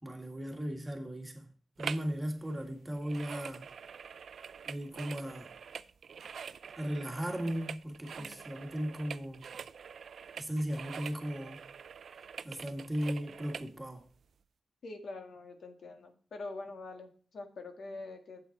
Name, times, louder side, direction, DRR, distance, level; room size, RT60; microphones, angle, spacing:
voice 1, 0.0-1.5 1.8-3.6 4.7-5.5 6.8-9.4 10.4-11.6 12.4-14.0, equal, 15° right, 1.9 m, -36 dB
sound 1, 1.8-2.2 2.4-13.7 14.2-14.3, right 6 dB, 70° right, 0.4 m, -45 dB
voice 2, 14.8-18.4, left 3 dB, 75° left, 1.7 m, -45 dB
8.1 x 7.7 x 4.0 m
wide cardioid pair, 120°, 0 cm